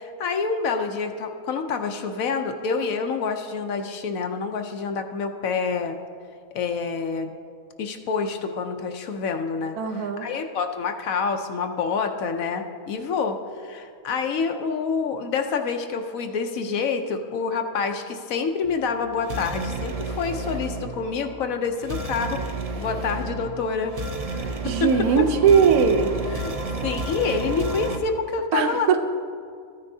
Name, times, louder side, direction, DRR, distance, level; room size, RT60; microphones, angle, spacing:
voice 1, 0.0-6.0 6.5-7.3 7.8-22.4 22.8-24.0 24.3-24.9 25.2-25.3 26.3-26.5 26.8-28.9, left 5 dB, 70° left, 6 dB, 1.1 m, -27 dB
voice 2, 9.8-10.3 24.6-26.1 28.5-29.0, right 6 dB, 80° right, 6 dB, 1.2 m, -19 dB
sound 1, 18.6-28.0, right 2 dB, 45° right, 0.5 m, -32 dB
14.0 x 9.6 x 2.7 m, 2.2 s
omnidirectional pair, 1.5 m